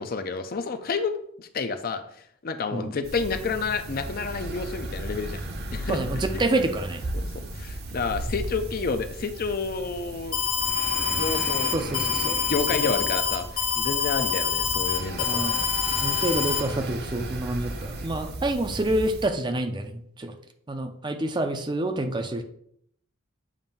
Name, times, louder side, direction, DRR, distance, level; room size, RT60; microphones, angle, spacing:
voice 1, 0.0-2.0 2.4-5.4 5.7-6.0 7.2-10.4 11.1-11.7 12.5-15.4, left 4 dB, 45° left, 9 dB, 0.5 m, -29 dB
sound 1, 3.0-19.3, right 2 dB, 50° right, 0.8 m, -35 dB
voice 2, 5.9-7.0 11.7-12.4 12.8-13.1 15.2-15.6 16.0-20.3 20.7-22.4, right 1 dB, 20° right, 7 dB, 0.5 m, -28 dB
Alarm, 10.3-16.6, left 7 dB, 85° left, 1.0 m, -26 dB
7.3 x 2.6 x 5.4 m, 0.68 s
head